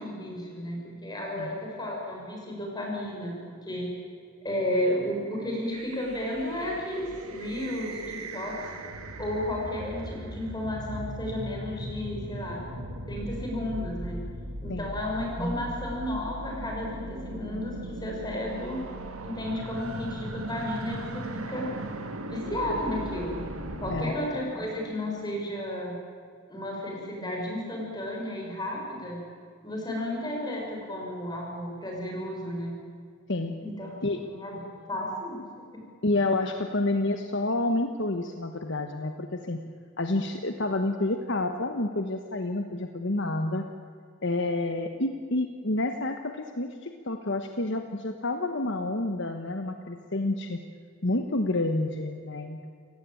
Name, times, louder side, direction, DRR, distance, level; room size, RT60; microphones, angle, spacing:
voice 1, 0.0-3.9 4.4-8.7 9.2-12.6 13.1-14.2 14.6-18.8 19.2-21.7 22.2-23.4 23.8-26.0 26.5-29.2 29.6-32.8 33.6-33.9 34.3-34.6 34.9-35.4 35.7-35.8, left 1 dB, 20° left, -1 dB, 6.4 m, -33 dB
sound 1, 5.4-24.0, right 1 dB, 80° right, 2.1 m, -38 dB
voice 2, 36.0-39.6 40.0-43.6 44.2-50.6 51.0-52.7, left 2 dB, 55° left, 6 dB, 1.2 m, -29 dB
28.5 x 17.5 x 9.1 m, 2.1 s
head